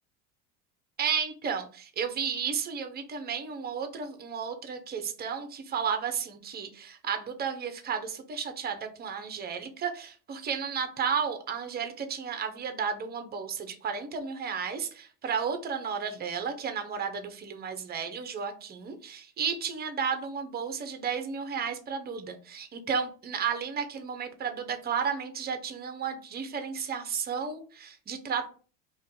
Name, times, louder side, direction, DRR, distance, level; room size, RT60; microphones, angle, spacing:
voice 1, 1.0-28.5, right 6 dB, 25° right, 8 dB, 0.5 m, -33 dB
2.5 x 2.2 x 4.0 m, 0.39 s
supercardioid pair, 105°, 41 cm